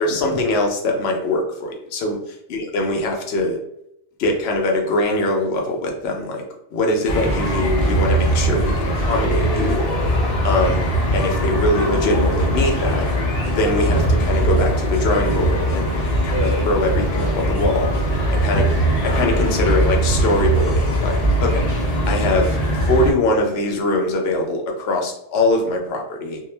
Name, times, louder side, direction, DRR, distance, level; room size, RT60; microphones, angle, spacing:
voice 1, 0.0-3.6 4.2-6.4 6.7-9.8 10.4-10.9 11.1-13.1 13.5-17.9 18.4-18.6 19.0-21.6 22.1-22.6 22.9-26.4, left 1 dB, 70° left, 2 dB, 0.8 m, -22 dB
sound 1, 7.1-23.1, right 1 dB, 55° left, 0.4 m, -20 dB
2.2 x 2.1 x 3.1 m, 0.76 s
omnidirectional pair, 1.1 m